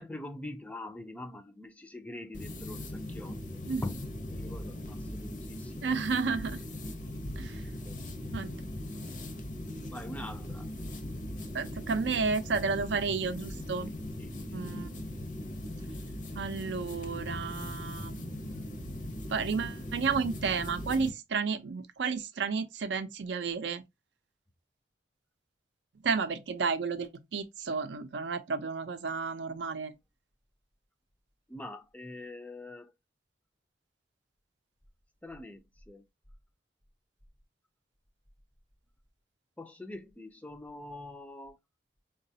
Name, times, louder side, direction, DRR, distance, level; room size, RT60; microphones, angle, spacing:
voice 1, 0.0-3.4 3.8-6.0 7.8-8.2 9.9-10.7 14.2-14.6 18.0-18.1 31.5-32.9 35.2-36.0 39.6-41.6, left 1 dB, 10° left, 0.4 m, -44 dB
sound 1, 2.3-21.1, left 1 dB, 45° left, 0.7 m, -39 dB
voice 2, 5.8-6.6 7.4-7.6 8.3-8.6 11.5-13.9 14.5-14.9 16.3-18.7 19.3-23.8 26.0-29.9, right 5 dB, 75° right, 0.5 m, -32 dB
3.9 x 2.3 x 2.6 m
head